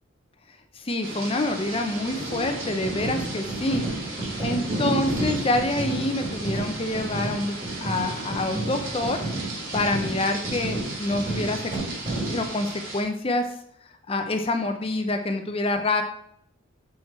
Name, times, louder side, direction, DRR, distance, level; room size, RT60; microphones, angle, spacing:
voice 1, 0.7-3.8 4.4-9.2 9.7-11.6 12.3-13.4 14.1-16.0, left 2 dB, 25° left, 6 dB, 0.6 m, -27 dB
sound 1, 1.0-13.0, right 1 dB, 80° right, 1.9 m, -34 dB
sound 2, 2.8-12.5, right 2 dB, 30° right, 3.0 m, -32 dB
6.2 x 5.9 x 4.3 m, 0.69 s
head